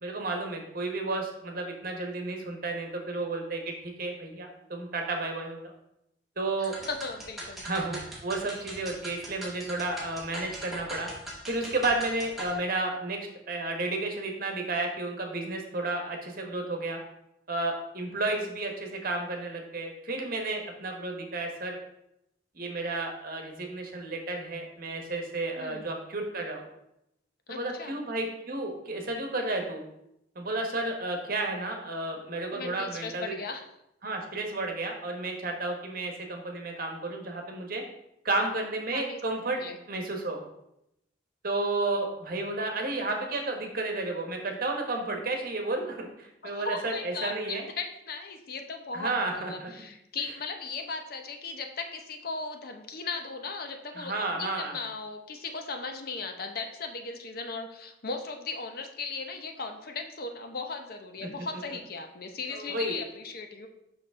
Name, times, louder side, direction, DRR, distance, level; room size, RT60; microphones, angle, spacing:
voice 1, 0.0-5.7 6.4-6.7 7.6-11.1 11.5-13.2 13.5-17.0 17.5-21.8 22.5-26.6 27.5-29.8 30.3-33.3 34.0-37.8 38.2-39.6 39.9-40.4 41.4-47.6 48.9-49.7 54.0-54.7 62.5-63.0, right 2 dB, 55° right, 3 dB, 1.3 m, -32 dB
voice 2, 6.6-7.7 25.6-25.9 27.5-28.0 32.5-33.7 38.9-39.2 39.6-39.8 46.4-63.7, left 4 dB, 60° left, 5 dB, 0.8 m, -37 dB
sound 1, 6.6-12.6, right 1 dB, ahead, 2.0 m, -41 dB
6.9 x 6.0 x 3.7 m, 0.82 s
head